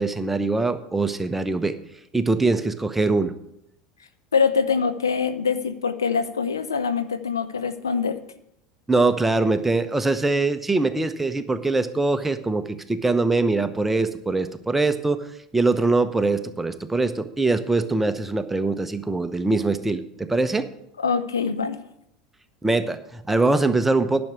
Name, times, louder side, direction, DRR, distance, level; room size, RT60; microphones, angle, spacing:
voice 1, 0.0-1.8 2.1-3.3 8.9-15.2 15.5-20.7 22.6-24.2, right 3 dB, 10° right, 10 dB, 0.8 m, -23 dB
voice 2, 4.3-8.2 21.0-21.8, left 5 dB, 80° left, 10 dB, 0.7 m, -24 dB
10.5 x 6.2 x 8.0 m, 0.79 s
figure-of-eight pair, 75°, 2 cm